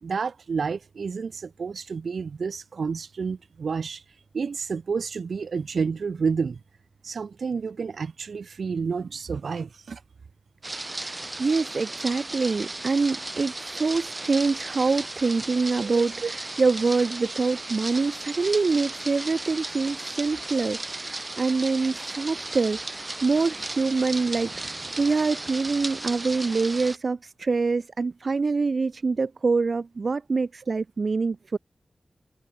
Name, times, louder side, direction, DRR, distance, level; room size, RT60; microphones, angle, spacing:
voice 1, 0.0-4.0 4.3-6.6 7.0-10.0 15.8-16.3, right 5 dB, 75° right, 1.4 m, -30 dB
sound 1, 10.6-27.0, right 2 dB, 25° right, 7.9 m, -35 dB
voice 2, 10.9-31.6, right 4 dB, 50° right, 2.6 m, -25 dB
wide cardioid pair, 105°, 0 cm